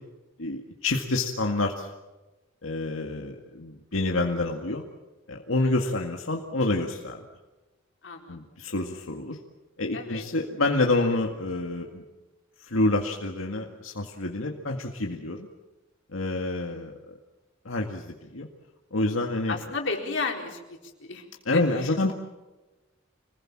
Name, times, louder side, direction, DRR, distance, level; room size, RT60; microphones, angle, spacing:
voice 1, 0.4-1.9 2.6-4.8 5.3-7.2 8.3-9.4 9.8-12.0 12.6-15.5 16.1-17.2 17.7-18.5 18.9-19.6 21.5-22.1, left 2 dB, 85° left, 2 dB, 2.0 m, -28 dB
voice 2, 8.0-8.4 9.9-10.3 19.5-21.2 21.5-22.1, left 3 dB, 65° left, 2 dB, 4.2 m, -33 dB
26.5 x 20.0 x 7.4 m, 1.1 s
head